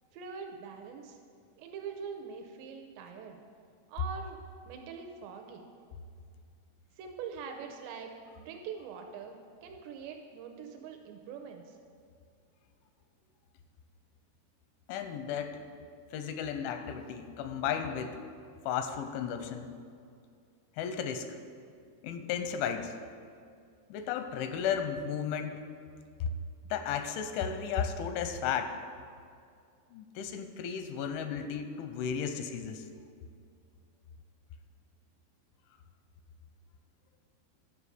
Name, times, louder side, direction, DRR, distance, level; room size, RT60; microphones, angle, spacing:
voice 1, 0.1-1.2 1.6-3.4 3.9-4.4 4.7-5.7 7.0-11.8, right 6 dB, 80° right, 4 dB, 2.7 m, -43 dB
voice 2, 14.9-15.6 16.1-18.2 18.7-19.7 20.8-21.3 22.0-22.9 23.9-25.6 26.2-26.3 26.7-28.8 29.9-32.8, left 7 dB, 85° left, 8 dB, 3.1 m, -34 dB
11.0 x 5.1 x 6.6 m, 2.3 s
omnidirectional pair, 5.3 m